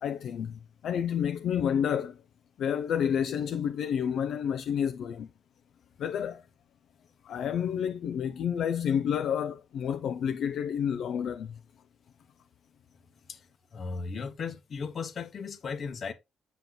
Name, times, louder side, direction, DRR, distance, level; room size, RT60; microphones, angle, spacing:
voice 1, 0.0-2.2 2.6-5.3 6.0-6.4 7.2-11.6, left 8 dB, 70° left, 0.4 m, -30 dB
voice 2, 13.7-16.1, left 5 dB, 50° left, 0.9 m, -36 dB
6.9 x 6.1 x 2.2 m
cardioid pair, 90°, 0 cm